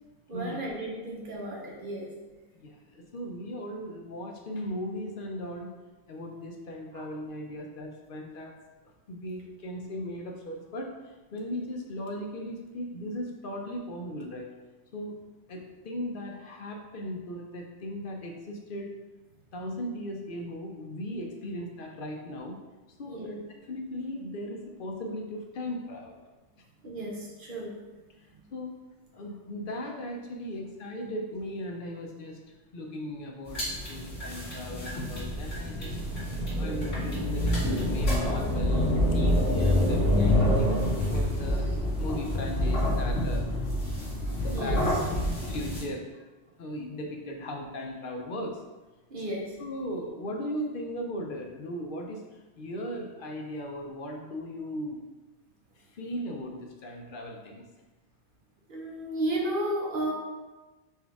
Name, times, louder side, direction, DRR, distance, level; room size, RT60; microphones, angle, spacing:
voice 1, 0.3-2.1 6.9-7.1 23.1-23.3 26.8-27.7 44.2-44.8 49.1-49.5 58.7-60.1, right 1 dB, 50° right, -2 dB, 1.1 m, -33 dB
voice 2, 2.5-5.8 6.1-8.5 9.1-14.5 14.9-15.2 15.5-18.9 19.5-22.6 23.0-23.4 23.6-26.2 28.5-28.7 29.1-32.4 32.7-36.0 36.6-40.8 41.1-41.7 42.0-43.7 44.4-46.1 46.6-48.6 49.6-52.2 52.6-55.0 55.8-57.6, left 1 dB, 55° left, 1 dB, 0.7 m, -37 dB
sound 1, 33.5-45.8, left 1 dB, 85° left, 2.1 m, -27 dB
4.5 x 3.4 x 3.5 m, 1.2 s
omnidirectional pair, 1.2 m